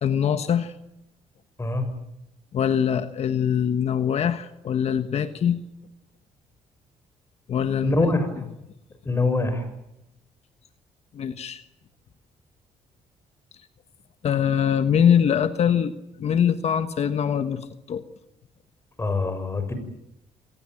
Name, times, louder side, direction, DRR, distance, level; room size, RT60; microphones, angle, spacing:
voice 1, 0.0-0.7 2.5-5.6 7.5-7.9 11.1-11.6 14.2-15.9 16.2-18.0, left 8 dB, 55° left, 10 dB, 1.4 m, -23 dB
voice 2, 7.8-8.3 9.0-9.6 19.0-19.7, left 3 dB, 20° left, 10 dB, 6.2 m, -23 dB
26.5 x 19.0 x 9.1 m, 0.85 s
cardioid pair, 100°, 13 cm